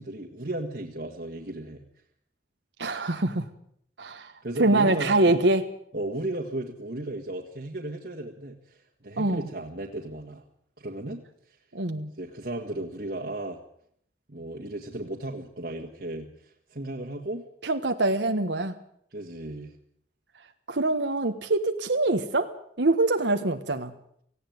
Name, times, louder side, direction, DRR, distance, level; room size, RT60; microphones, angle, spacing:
voice 1, 0.0-1.8 4.4-5.3 5.9-10.4 10.8-11.6 12.2-13.6 14.3-17.5 19.1-19.7, right 1 dB, 60° right, 0 dB, 1.9 m, -35 dB
voice 2, 2.8-3.5 4.0-4.3 4.6-5.6 9.2-9.5 11.7-12.1 17.6-18.7 20.7-23.9, right 2 dB, 85° right, 6 dB, 1.4 m, -24 dB
18.0 x 16.5 x 9.5 m, 0.67 s
head